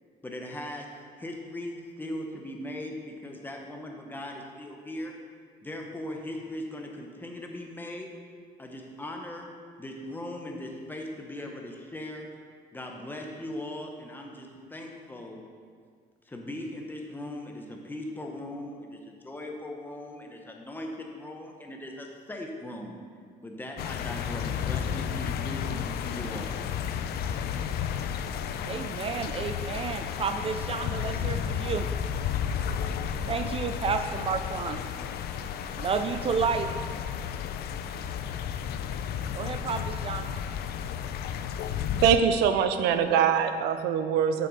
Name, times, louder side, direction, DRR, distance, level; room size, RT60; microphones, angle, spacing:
voice 1, 0.2-5.1 5.6-8.1 8.6-9.5 9.8-12.3 12.7-15.4 16.2-23.0 23.4-26.6, left 1 dB, 10° left, 1 dB, 1.1 m, -39 dB
sound 1, 23.8-42.2, left 8 dB, 70° left, 0.5 m, -32 dB
voice 2, 28.6-31.9 33.3-34.8 35.8-36.7 39.3-40.3, right 5 dB, 35° right, 7 dB, 0.4 m, -31 dB
voice 3, 42.0-44.5, right 7 dB, 90° right, 9 dB, 0.6 m, -23 dB
6.9 x 6.7 x 5.0 m, 2.1 s
cardioid pair, 110°, 17 cm